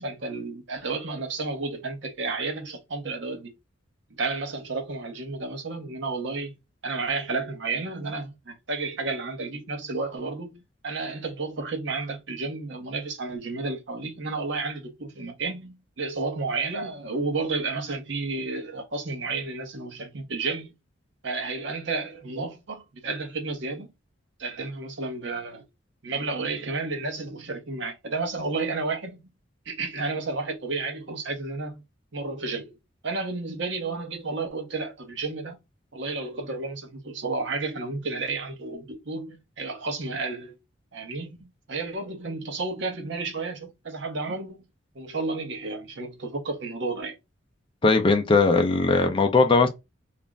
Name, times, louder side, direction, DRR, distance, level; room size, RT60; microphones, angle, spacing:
voice 1, 0.0-3.5 4.1-6.6 6.8-20.7 21.2-23.9 24.4-25.6 26.0-29.2 29.7-31.8 32.1-32.7 33.0-35.6 35.9-40.6 40.9-44.6 44.9-47.2, right 3 dB, 65° right, 0.7 m, -32 dB
voice 2, 47.8-49.7, left 3 dB, 25° left, 0.4 m, -19 dB
2.4 x 2.0 x 3.3 m
head